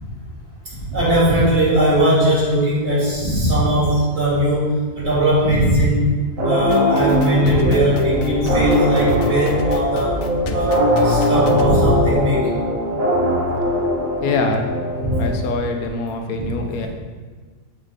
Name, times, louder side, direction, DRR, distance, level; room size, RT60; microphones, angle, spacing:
voice 1, 0.7-6.2 6.4-10.2 10.5-10.8 11.0-12.5 15.0-15.2, equal, 50° right, -9 dB, 2.7 m, -18 dB
sound 1, 6.4-15.8, equal, 70° right, 1.7 m, -21 dB
sound 2, 6.6-11.6, left 2 dB, 65° left, 0.8 m, -31 dB
voice 2, 13.2-13.8 14.2-14.7 15.2-16.9, left 3 dB, 90° left, 4 dB, 1.2 m, -25 dB
6.3 x 4.3 x 4.8 m, 1.4 s
omnidirectional pair, 1.5 m